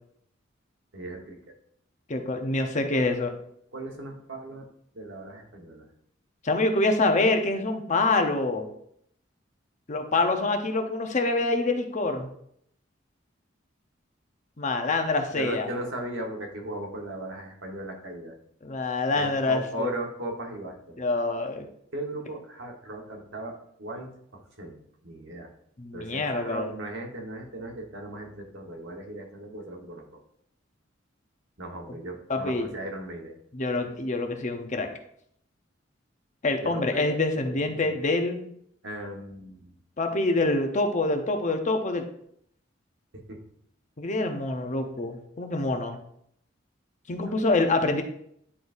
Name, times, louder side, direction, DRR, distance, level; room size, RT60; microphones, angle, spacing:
voice 1, 0.9-1.4 2.9-3.0 3.7-4.7 4.9-5.9 15.4-18.4 19.1-21.0 21.9-24.8 25.0-25.5 25.9-30.0 31.6-33.4 36.6-37.2 37.4-37.9 38.8-39.7 43.1-43.4 47.1-47.4, right 1 dB, 75° right, 1 dB, 1.2 m, -37 dB
voice 2, 2.1-3.3 6.4-8.7 9.9-12.3 14.6-15.7 18.6-19.9 21.0-21.7 25.8-26.7 32.3-32.7 33.5-34.9 36.4-38.4 40.0-42.0 44.0-46.0 47.1-48.0, left 2 dB, 40° left, 5 dB, 0.7 m, -26 dB
9.7 x 3.9 x 2.6 m, 0.69 s
head